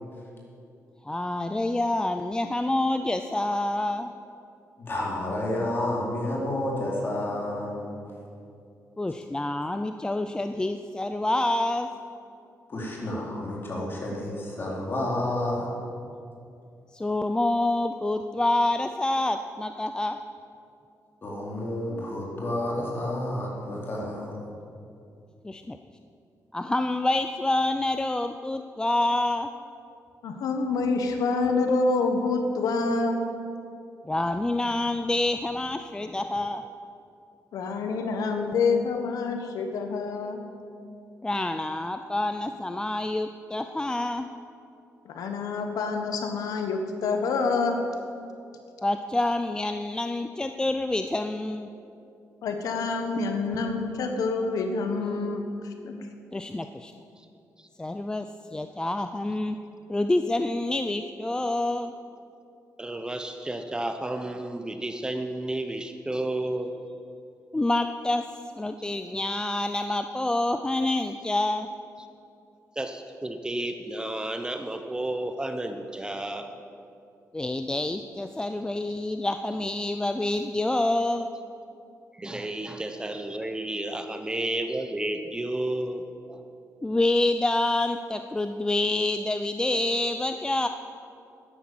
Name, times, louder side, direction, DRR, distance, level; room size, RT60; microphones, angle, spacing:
voice 1, 1.1-4.1 9.0-11.9 16.9-20.2 25.4-25.8 26.5-29.5 34.0-36.6 41.2-44.3 48.8-51.7 56.3-56.9 57.8-59.6 59.9-61.9 67.5-68.3 68.6-71.7 77.3-81.3 86.8-90.7, left 2 dB, 15° left, 8 dB, 0.5 m, -27 dB
voice 2, 4.8-8.0 12.7-15.7 21.2-24.4, left 1 dB, 40° left, -3 dB, 4.0 m, -30 dB
voice 3, 30.2-33.2 37.5-40.4 45.0-47.8 52.4-55.4 55.8-55.9, left 4 dB, 85° left, 5 dB, 1.3 m, -27 dB
voice 4, 62.8-66.8 72.8-76.5 82.2-86.0 86.3-86.4, right 1 dB, 15° right, 6 dB, 0.9 m, -32 dB
12.5 x 10.5 x 7.8 m, 2.6 s
cardioid pair, 110°, 6 cm